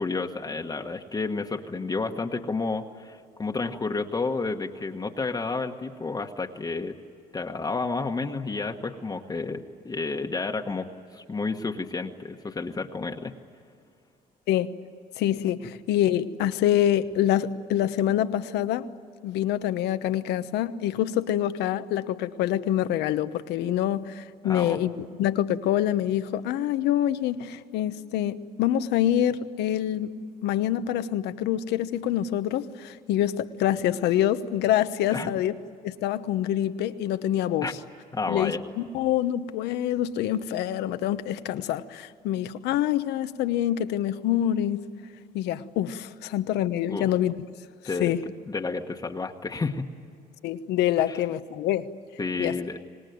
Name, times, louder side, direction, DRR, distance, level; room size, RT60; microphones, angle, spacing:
voice 1, 0.0-7.0 7.3-10.9 11.1-13.3 24.4-24.8 35.1-35.3 37.6-37.7 38.1-38.6 46.9-47.1 47.8-48.1 48.5-49.9 51.1-51.2 52.2-52.8, left 3 dB, 20° left, 1.3 m, -30 dB
voice 2, 15.2-18.9 19.2-30.1 30.4-35.5 35.8-37.8 38.3-44.8 45.3-47.3 48.0-48.2 50.4-51.9 52.4-52.5, left 11 dB, 85° left, 1.1 m, -26 dB
25.5 x 19.5 x 9.3 m
cardioid pair, 110°, 17 cm